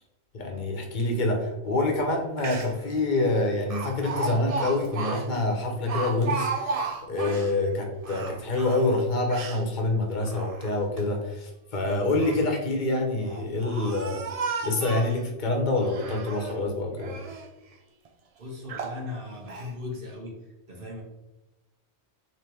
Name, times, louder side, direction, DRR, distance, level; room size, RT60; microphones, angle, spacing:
voice 1, 0.3-14.3 14.6-17.2, left 2 dB, 45° left, 2 dB, 0.9 m, -26 dB
Speech, 2.1-2.2 2.4-2.9 3.7-7.5 8.0-9.6 10.2-11.0 11.9-12.5 13.2-15.2 15.8-16.6 17.0-17.5 18.1-18.2 18.7-19.0 19.5-19.7, right 4 dB, 75° right, 0.3 m, -34 dB
voice 2, 18.4-20.3 20.7-21.0, left 3 dB, 50° right, -1 dB, 1.2 m, -37 dB
3.3 x 3.1 x 4.4 m, 1.0 s
omnidirectional pair, 1.2 m